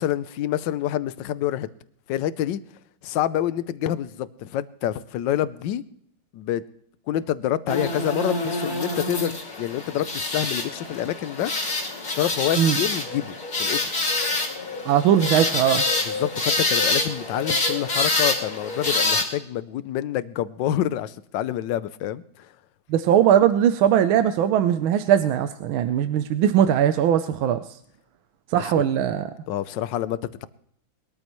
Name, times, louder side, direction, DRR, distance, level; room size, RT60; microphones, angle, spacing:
voice 1, 0.0-1.7 2.1-2.6 3.0-5.8 6.3-6.6 7.1-9.3 9.6-11.5 12.2-13.8 16.1-22.5 28.5-28.8 29.5-30.5, left 12 dB, 70° left, 1.3 m, -27 dB
sound 1, 7.7-19.2, left 2 dB, 45° left, 2.8 m, -26 dB
voice 2, 14.8-15.8 22.9-27.6 28.5-29.3, right 10 dB, 85° right, 1.5 m, -20 dB
22.0 x 13.5 x 3.1 m
omnidirectional pair, 2.2 m